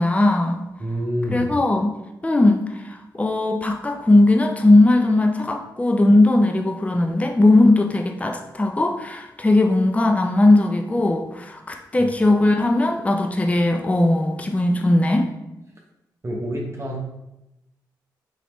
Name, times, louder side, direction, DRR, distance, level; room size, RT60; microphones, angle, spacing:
voice 1, 0.0-0.6 1.3-15.3, left 2 dB, 15° left, 4 dB, 0.5 m, -18 dB
voice 2, 0.8-1.5 12.0-12.1 16.2-17.0, equal, 30° right, -1 dB, 0.9 m, -27 dB
3.9 x 3.2 x 3.1 m, 0.92 s
supercardioid pair, 45°, 9 cm